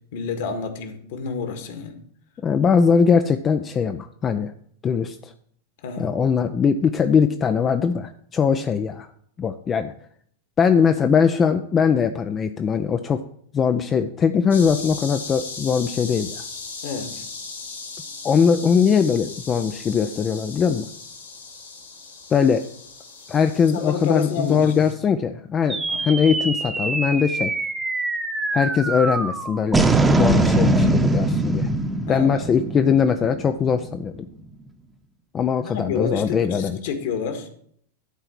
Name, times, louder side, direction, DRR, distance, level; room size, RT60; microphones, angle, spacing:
voice 1, 0.1-2.0 5.8-6.1 16.8-17.2 23.6-24.9 25.9-26.0 32.1-32.5 35.6-37.5, left 5 dB, 55° left, 7 dB, 1.8 m, -29 dB
voice 2, 2.4-4.5 4.8-5.3 6.0-9.1 9.4-9.9 10.6-13.2 13.5-16.4 18.2-20.9 22.3-22.6 23.3-27.5 28.5-29.9 30.2-31.7 32.1-34.3 35.3-36.8, left 6 dB, 25° left, 8 dB, 0.5 m, -21 dB
sound 1, 14.5-24.9, left 4 dB, 70° left, 3.0 m, -38 dB
sound 2, 25.7-34.3, right 2 dB, 10° right, 1.0 m, -22 dB
11.5 x 4.5 x 7.7 m, 0.64 s
figure-of-eight pair, 90°, 0 cm